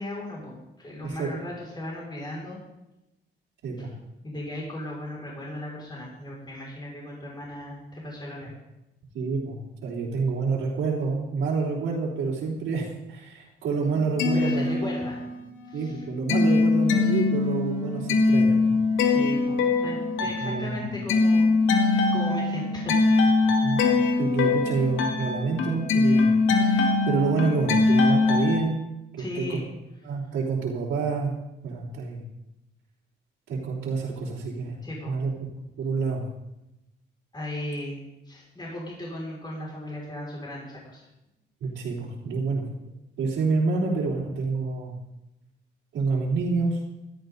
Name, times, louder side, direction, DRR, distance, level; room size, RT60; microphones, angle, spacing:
voice 1, 0.0-2.6 3.8-3.9 4.2-8.5 14.3-15.2 15.6-16.0 19.1-21.6 22.1-23.5 29.2-29.6 34.8-35.2 37.3-41.1, left 1 dB, 20° left, -4 dB, 5.9 m, -37 dB
voice 2, 9.1-14.8 15.7-18.8 20.4-20.9 23.4-23.8 24.2-26.3 26.6-28.8 29.1-29.6 30.0-31.3 31.6-32.2 33.5-34.8 35.0-35.3 35.8-36.2 41.6-42.6 43.2-44.9 45.9-46.8, right 4 dB, 80° right, -7 dB, 3.7 m, -28 dB
sound 1, 14.0-15.4 15.7-28.6, left 3 dB, 90° left, 2.1 m, -22 dB
16.0 x 13.0 x 4.0 m, 0.90 s
cardioid pair, 90°, 20 cm